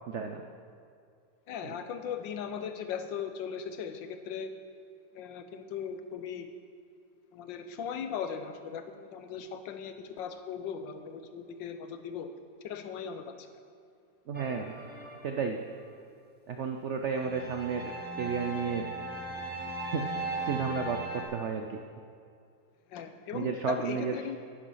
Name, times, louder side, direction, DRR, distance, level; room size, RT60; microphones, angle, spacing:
voice 1, 0.1-0.4 1.6-1.8 14.3-14.7 15.2-15.6 16.5-17.9 18.2-18.9 19.9-20.0 20.4-21.7 23.3-24.2, right 6 dB, 80° right, 5 dB, 0.6 m, -32 dB
voice 2, 1.5-4.5 5.1-6.5 7.3-12.3 12.6-13.3 22.9-24.4, left 7 dB, 85° left, 8 dB, 1.5 m, -38 dB
sound 1, 14.3-15.7 17.1-21.2, right 1 dB, 5° right, 1.3 m, -38 dB
10.5 x 10.0 x 5.6 m, 2.4 s
omnidirectional pair, 2.0 m